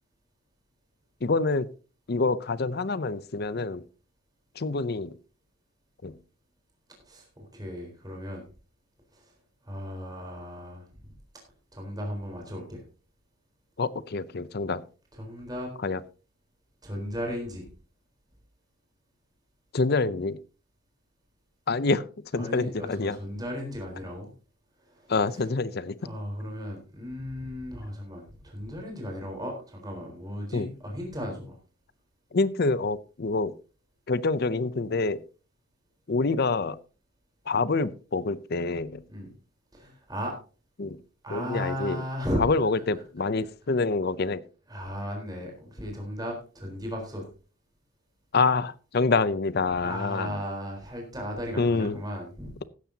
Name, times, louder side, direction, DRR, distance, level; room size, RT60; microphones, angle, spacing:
voice 1, 1.2-1.7 2.1-3.8 4.6-5.1 6.0-6.1 13.8-14.8 15.8-16.0 19.7-20.4 21.7-22.0 22.3-23.2 25.1-26.0 30.5-30.7 32.3-33.5 34.1-35.2 36.1-36.8 37.5-39.0 40.8-41.0 41.3-42.0 42.4-44.4 48.3-50.3 51.6-52.0, left 3 dB, 45° left, 17 dB, 0.6 m, -26 dB
voice 2, 7.0-8.4 9.1-9.3 9.6-11.1 11.7-12.8 15.1-15.7 16.8-17.7 22.4-24.3 24.8-25.5 26.0-31.6 39.1-39.3 39.7-40.3 41.2-42.4 44.7-47.2 49.8-52.5, equal, 20° right, 0 dB, 4.0 m, -36 dB
15.5 x 11.5 x 2.8 m, 0.35 s
head